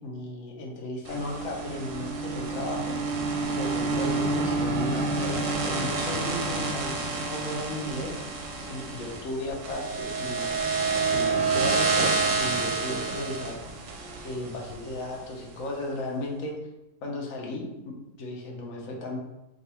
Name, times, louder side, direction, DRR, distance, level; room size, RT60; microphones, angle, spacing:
voice 1, 0.0-3.1 3.5-8.1 8.7-10.5 11.1-13.6 14.2-16.6 17.0-19.2, left 1 dB, 65° left, -1 dB, 1.2 m, -35 dB
sound 1, 1.0-15.2, right 3 dB, 65° right, 0.8 m, -28 dB
3.8 x 2.4 x 4.2 m, 0.94 s
omnidirectional pair, 1.7 m